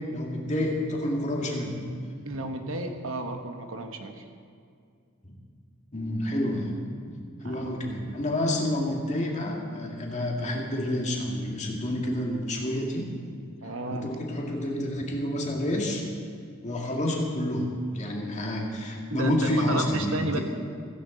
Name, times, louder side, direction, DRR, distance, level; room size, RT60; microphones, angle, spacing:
voice 1, 0.1-1.8 5.2-5.3 5.9-6.7 7.4-13.1 13.9-16.1 16.6-20.4, left 1 dB, 35° left, -1 dB, 2.1 m, -29 dB
voice 2, 2.2-4.3 7.4-7.7 13.6-14.1 19.1-20.4, right 2 dB, 75° right, 5 dB, 1.2 m, -32 dB
16.0 x 15.0 x 4.0 m, 2.3 s
head